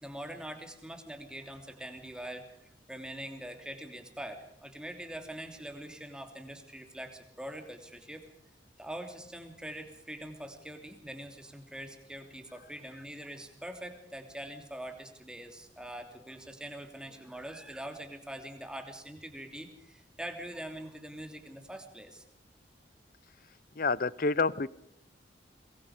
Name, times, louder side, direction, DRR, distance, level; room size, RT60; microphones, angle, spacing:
voice 1, 0.0-8.3 8.8-22.2, right 1 dB, 5° right, 5 dB, 3.0 m, -43 dB
voice 2, 23.8-24.7, left 4 dB, 50° left, 20 dB, 0.7 m, -28 dB
23.0 x 22.5 x 5.0 m, 0.77 s
head